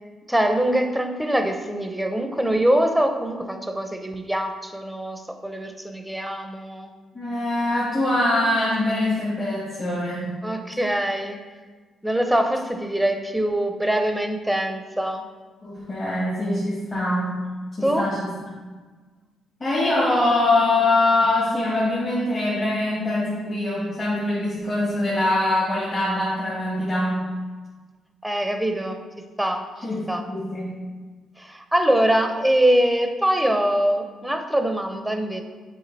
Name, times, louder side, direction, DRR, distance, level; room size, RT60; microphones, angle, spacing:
voice 1, 0.3-6.9 10.4-11.4 12.0-15.2 17.8-18.1 28.2-29.0 29.4-29.6 30.1-30.2 31.4-35.4, right 1 dB, 5° right, 5 dB, 0.6 m, -23 dB
voice 2, 7.1-10.3 15.6-17.4 17.8-18.3 19.6-27.3 29.8-30.7, left 2 dB, 40° left, -8 dB, 1.9 m, -23 dB
7.3 x 3.7 x 4.1 m, 1.4 s
cardioid pair, 90°, 0 cm